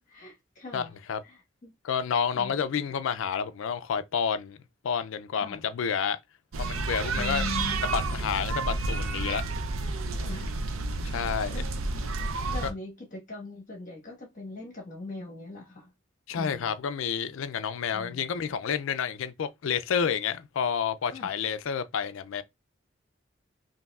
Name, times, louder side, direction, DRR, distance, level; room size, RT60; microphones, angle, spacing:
voice 1, 0.1-0.9 1.2-1.7 2.3-2.5 5.4-5.6 7.1-7.8 10.2-10.6 11.1-11.7 12.2-15.9 16.3-16.7 17.9-18.2 21.1-21.3, left 3 dB, 40° left, 1.3 m, -41 dB
voice 2, 0.7-1.2 1.8-4.6 4.8-6.2 6.6-7.5 7.8-9.4 11.0-11.6 12.6-12.7 16.3-22.4, left 7 dB, 70° left, 0.4 m, -29 dB
sound 1, 6.5-12.7, right 3 dB, 80° right, 0.5 m, -30 dB
5.4 x 2.6 x 2.3 m
head